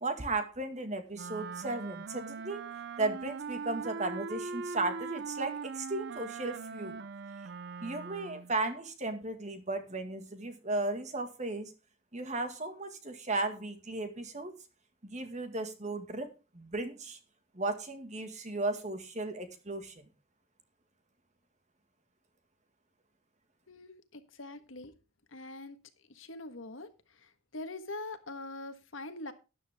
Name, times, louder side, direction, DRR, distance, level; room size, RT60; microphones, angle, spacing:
voice 1, 0.0-2.6 3.0-7.0 7.8-11.7 12.1-14.5 15.0-16.3 16.5-17.2 17.5-20.1, right 2 dB, 35° right, 8 dB, 1.9 m, -35 dB
Wind instrument woodwind instrument, 1.1-8.5, right 5 dB, 55° right, 0.5 m, -41 dB
voice 2, 23.7-24.9 25.3-25.8 26.1-29.3, left 2 dB, 70° left, 9 dB, 1.5 m, -43 dB
12.5 x 10.0 x 3.6 m, 0.30 s
head